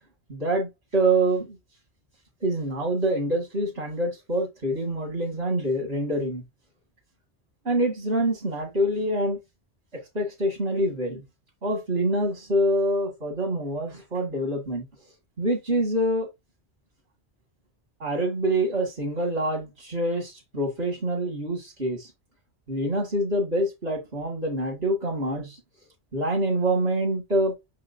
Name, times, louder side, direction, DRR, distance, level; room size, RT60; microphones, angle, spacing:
voice 1, 0.3-1.6 2.4-6.4 7.6-9.4 9.9-11.2 11.6-14.8 15.4-16.3 18.0-22.1 22.7-25.6 26.1-27.7, right 1 dB, 65° right, 2.5 m, -26 dB
6.3 x 5.6 x 2.7 m
omnidirectional pair, 1.2 m